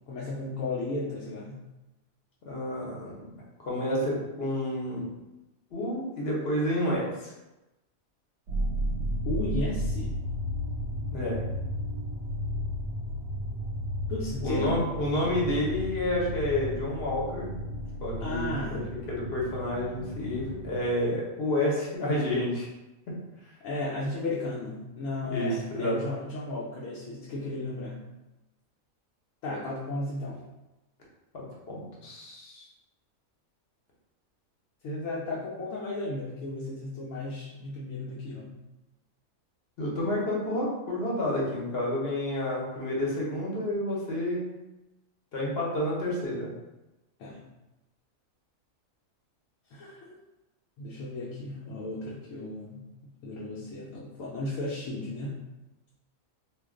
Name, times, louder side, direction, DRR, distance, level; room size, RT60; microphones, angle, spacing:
voice 1, 0.1-1.6 9.2-10.2 14.1-14.9 18.2-18.8 23.6-28.0 29.4-30.4 34.8-38.6 47.2-47.5 49.7-50.2 50.8-55.4, left 2 dB, 75° left, -5 dB, 1.0 m, -34 dB
voice 2, 2.4-5.0 5.7-7.3 11.1-11.4 14.4-17.5 18.0-18.8 19.1-22.7 25.3-26.0 31.3-32.7 39.8-44.5 45.3-46.5, left 1 dB, 50° left, -4 dB, 0.9 m, -30 dB
sound 1, 8.5-20.9, equal, 90° right, 1.1 m, -33 dB
2.5 x 2.2 x 3.6 m, 1.0 s
omnidirectional pair, 1.4 m